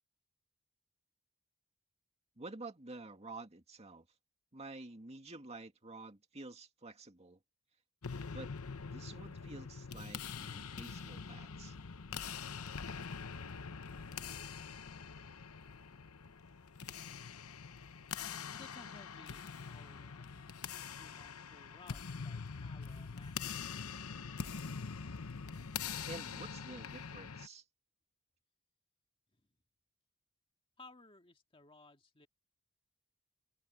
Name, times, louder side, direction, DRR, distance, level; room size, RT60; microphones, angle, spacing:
voice 1, 2.4-4.1 4.5-7.4 8.3-8.5 8.8-11.8 26.1-27.6, right 2 dB, 30° right, 2.2 m, -50 dB
sound 1, 8.0-27.5, left 6 dB, 80° left, 0.9 m, -44 dB
voice 2, 18.5-20.6 20.9-23.6 29.3-29.5 30.8-32.3, left 2 dB, 25° left, 1.9 m, -59 dB
head